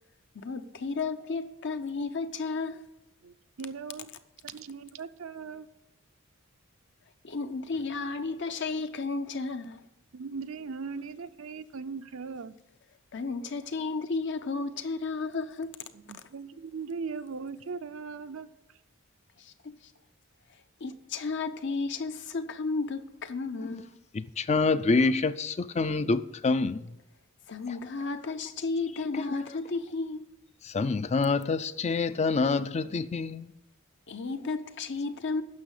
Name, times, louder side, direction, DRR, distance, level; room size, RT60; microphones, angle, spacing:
voice 1, 0.3-2.8 7.2-9.8 13.1-15.8 19.6-19.7 20.8-23.9 27.5-30.3 34.1-35.4, left 4 dB, 60° left, 0.8 m, -33 dB
voice 2, 3.2-4.1 4.4-5.7 10.1-12.6 15.9-18.5, right 5 dB, 75° right, 0.6 m, -39 dB
voice 3, 24.1-27.0 27.7-27.8 29.1-29.6 30.6-33.5, left 3 dB, 30° left, 0.4 m, -27 dB
9.8 x 6.3 x 8.2 m
head